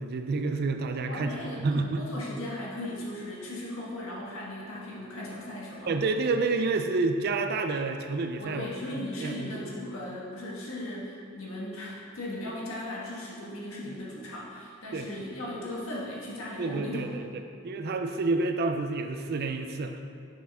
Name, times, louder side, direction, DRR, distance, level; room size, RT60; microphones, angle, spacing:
voice 1, 0.0-2.0 5.9-8.7 8.9-9.5 14.9-15.1 16.6-20.0, right 3 dB, 50° right, 6 dB, 0.4 m, -29 dB
voice 2, 1.1-5.9 8.4-17.1, left 1 dB, 75° left, -5 dB, 1.4 m, -37 dB
7.3 x 5.8 x 3.5 m, 2.3 s
head